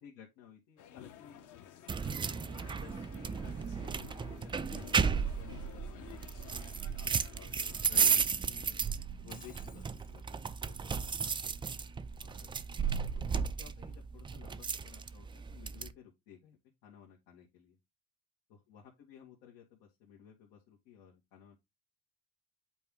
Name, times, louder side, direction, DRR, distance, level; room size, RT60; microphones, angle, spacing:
voice 1, 0.0-1.6 2.3-6.8 7.3-11.7 12.2-12.5 13.1-17.8 18.5-21.6, left 9 dB, 85° left, 2.1 m, -56 dB
sound 1, 0.8-8.2, left 9 dB, 60° left, 1.2 m, -53 dB
sound 2, 1.9-15.9, right 6 dB, 15° right, 0.3 m, -34 dB
Shatter, 9.3-10.2, left 5 dB, 25° left, 1.0 m, -58 dB
8.4 x 4.5 x 3.8 m
cardioid pair, 125°, 35 cm